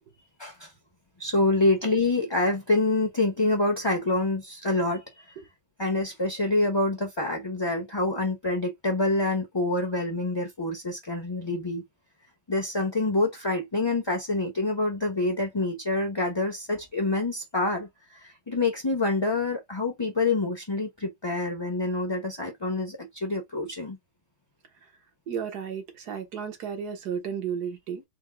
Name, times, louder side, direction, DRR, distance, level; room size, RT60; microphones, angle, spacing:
voice 1, 1.2-5.0 5.8-11.8 12.5-17.9 18.2-24.0, left 2 dB, 25° left, 0.7 m, -26 dB
voice 2, 25.3-28.0, right 7 dB, 65° right, 1.6 m, -33 dB
4.5 x 2.2 x 3.5 m
omnidirectional pair, 1.9 m